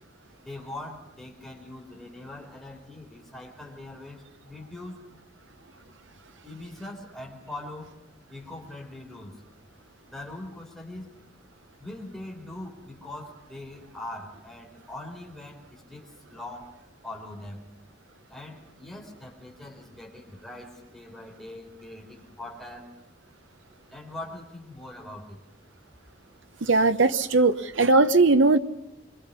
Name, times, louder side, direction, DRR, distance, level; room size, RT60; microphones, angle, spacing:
voice 1, 0.4-5.0 6.4-7.9 8.3-9.3 10.0-11.1 11.8-16.7 17.0-17.7 18.3-22.9 23.9-25.4, left 2 dB, ahead, -2 dB, 4.1 m, -42 dB
voice 2, 26.6-28.6, right 3 dB, 75° right, 10 dB, 0.9 m, -19 dB
25.5 x 24.0 x 5.6 m, 0.96 s
head